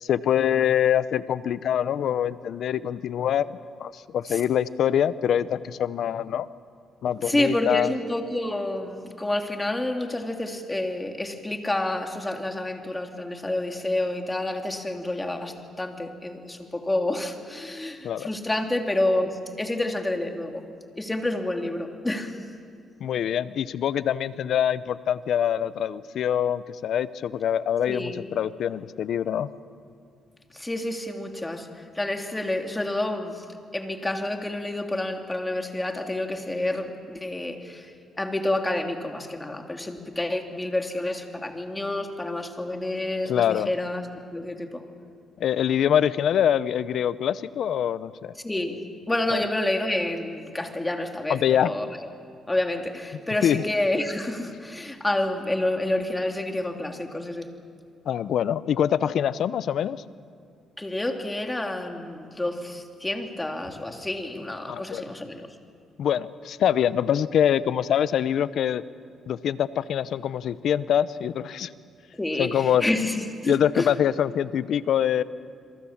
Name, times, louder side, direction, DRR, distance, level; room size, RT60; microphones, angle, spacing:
voice 1, 0.0-6.5 7.0-7.9 18.0-18.3 23.0-29.5 43.3-43.7 45.4-48.3 49.3-49.4 51.3-51.7 53.4-53.6 58.1-60.0 64.7-65.0 66.0-68.8 69.3-71.7 72.4-72.8 73.4-75.2, left 9 dB, 70° left, 16 dB, 0.8 m, -24 dB
voice 2, 7.2-20.6 21.0-22.3 27.9-28.3 30.5-33.4 33.7-37.9 38.2-44.8 48.4-52.1 52.5-57.5 60.8-65.5 72.1-73.9, left 1 dB, 15° left, 4 dB, 2.8 m, -29 dB
28.0 x 23.0 x 7.3 m, 2.2 s
cardioid pair, 90°, 0 cm